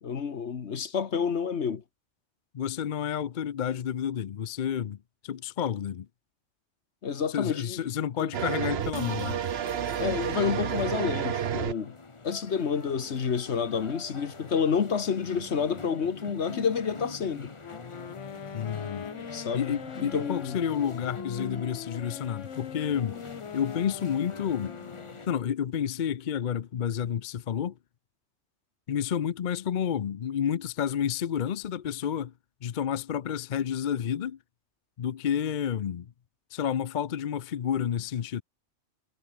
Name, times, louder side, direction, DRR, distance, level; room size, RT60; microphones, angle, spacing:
voice 1, 0.0-1.8 7.0-7.9 8.2-8.3 10.0-11.9 12.2-17.5 19.3-20.6, left 6 dB, 70° left, 1.5 m, -29 dB
voice 2, 2.5-5.0 5.2-6.1 7.3-9.4 18.5-19.1 19.5-23.2 23.5-24.7 25.3-27.8 28.9-32.3 32.6-34.4 35.0-36.1 36.5-38.4, left 9 dB, 50° left, 0.7 m, -30 dB
sound 1, 8.3-11.7, right 9 dB, 60° right, 1.0 m, -30 dB
sound 2, 8.8-25.3, left 3 dB, 25° left, 1.1 m, -44 dB
Wind instrument woodwind instrument, 17.6-25.5, left 7 dB, 85° left, 1.5 m, -42 dB
omnidirectional pair, 1.2 m